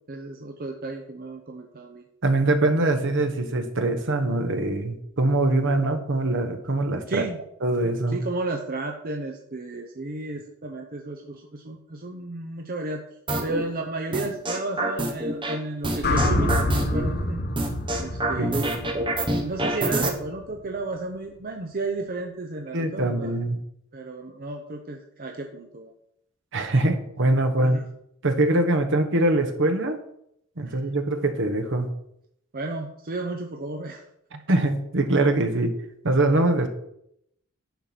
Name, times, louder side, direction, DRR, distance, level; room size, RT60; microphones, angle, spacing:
voice 1, 0.1-2.0 7.1-7.4 8.1-13.0 13.4-17.4 18.0-18.7 19.4-23.3 23.9-25.9 27.6-27.8 30.6-30.8 32.5-34.0, right 2 dB, 45° right, 3 dB, 0.8 m, -33 dB
voice 2, 2.2-7.2 7.6-8.2 18.4-18.7 22.7-23.6 26.5-27.8 28.2-30.0 30.6-31.9 34.5-35.8 36.0-36.7, right 2 dB, 60° right, 7 dB, 1.2 m, -23 dB
sound 1, 13.3-13.6 14.1-15.5 15.8-17.0 17.6-20.1, right 1 dB, 25° right, 1.2 m, -26 dB
sound 2, 16.0-20.2, left 1 dB, 50° left, 1.2 m, -27 dB
10.5 x 4.6 x 6.0 m, 0.76 s
head